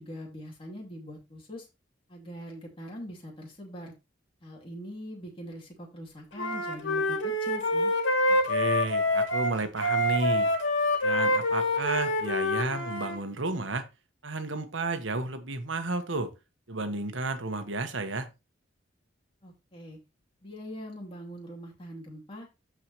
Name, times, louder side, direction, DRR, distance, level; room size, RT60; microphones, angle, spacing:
voice 1, 0.0-1.7 2.1-3.9 4.4-7.9 19.4-20.0 20.4-22.5, equal, 30° left, 2.7 m, -42 dB
Wind instrument woodwind instrument, 6.4-13.2, left 1 dB, 80° left, 2.5 m, -26 dB
voice 2, 8.4-10.5 11.0-13.9 14.2-16.3 16.7-18.3, right 3 dB, 85° right, 1.3 m, -32 dB
14.0 x 4.9 x 3.0 m
head